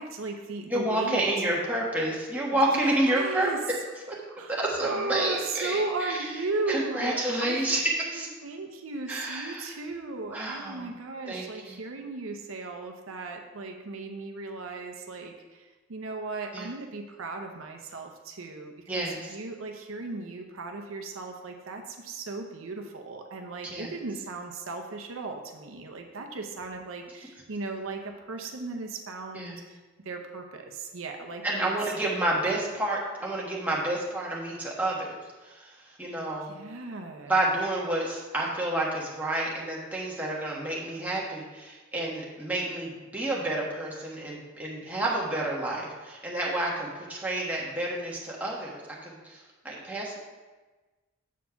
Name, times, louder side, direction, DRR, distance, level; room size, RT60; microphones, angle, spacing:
voice 1, 0.0-1.2 2.5-3.6 4.2-7.7 8.0-29.8 30.0-31.7 36.5-37.3, right 3 dB, 70° right, 3 dB, 0.7 m, -36 dB
voice 2, 0.7-3.5 4.1-4.2 4.5-6.2 6.7-8.3 9.1-9.7 10.3-10.9 11.3-11.8 16.5-16.7 18.9-19.3 23.6-23.9 29.3-29.5 31.4-35.1 35.4-36.6 37.3-50.2, right 1 dB, 5° right, -4 dB, 1.3 m, -29 dB
7.2 x 4.4 x 5.7 m, 1.2 s
head